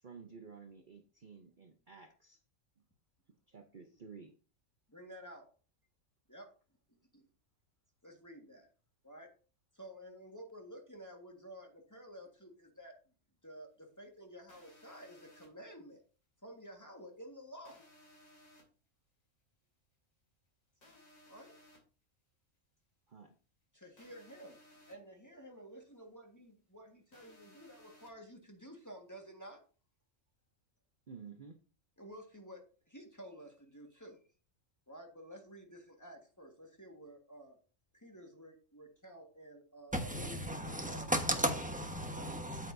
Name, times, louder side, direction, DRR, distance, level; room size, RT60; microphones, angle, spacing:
voice 1, 0.0-2.4 3.5-4.3 23.1-23.4 31.1-31.6, right 5 dB, 45° right, 0.9 m, -52 dB
voice 2, 4.9-5.5 6.3-6.5 7.1-7.3 8.0-8.7 9.0-9.3 9.7-12.9 13.4-16.0 16.4-17.9 21.3-21.5 23.7-29.6 32.0-34.2 34.9-37.6 37.9-41.1 42.0-42.6, equal, 15° left, 1.5 m, -52 dB
sound 1, 14.5-15.5 17.6-18.6 20.8-21.8 24.0-24.9 27.1-28.1, left 1 dB, 85° left, 3.2 m, -61 dB
voice 3, 39.9-42.7, equal, 5° right, 1.1 m, -35 dB
8.8 x 8.3 x 2.6 m
omnidirectional pair, 1.4 m